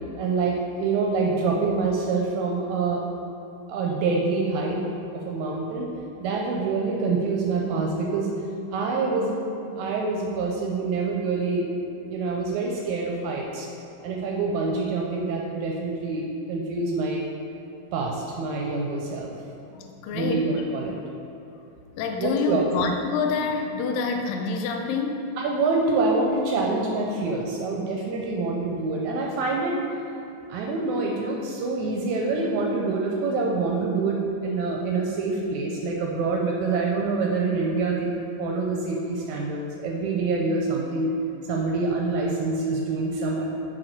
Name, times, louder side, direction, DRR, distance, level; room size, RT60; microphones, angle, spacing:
voice 1, 0.2-3.0 3.7-4.8 5.1-5.9 6.2-8.3 8.7-9.4 9.8-11.7 12.1-13.7 14.0-17.3 17.9-19.3 20.1-20.9 22.2-22.7 25.4-29.8 30.5-38.1 38.4-41.1 41.5-43.5, right 3 dB, 80° right, -1 dB, 1.8 m, -26 dB
voice 2, 19.7-20.5 22.0-25.2, left 4 dB, 80° left, 3 dB, 1.7 m, -27 dB
6.5 x 4.5 x 4.4 m, 2.9 s
omnidirectional pair, 3.7 m